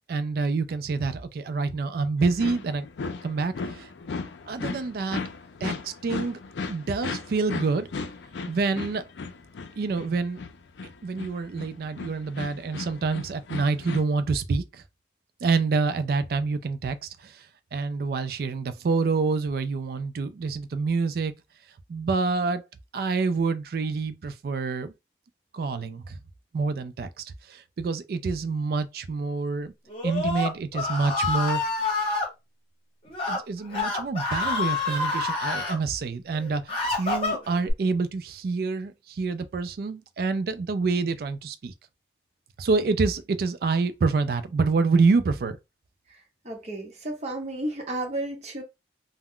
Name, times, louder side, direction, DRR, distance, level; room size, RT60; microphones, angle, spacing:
voice 1, 0.1-2.9 3.2-3.9 4.5-5.2 5.6-6.4 6.7-7.9 8.5-9.1 9.8-10.4 11.0-14.8 15.4-21.3 21.9-22.6 22.9-24.9 25.5-26.2 26.5-29.7 30.0-31.6 33.3-41.7 42.6-45.6, right 4 dB, 55° right, 0.3 m, -27 dB
sound 1, 2.2-14.0, left 4 dB, 80° left, 0.4 m, -36 dB
Screaming, 29.9-32.3 33.0-33.4 33.7-35.8 36.3-37.7, left 3 dB, 30° left, 1.0 m, -27 dB
voice 2, 46.4-48.6, right 1 dB, 35° right, 0.8 m, -32 dB
2.3 x 2.0 x 3.6 m
head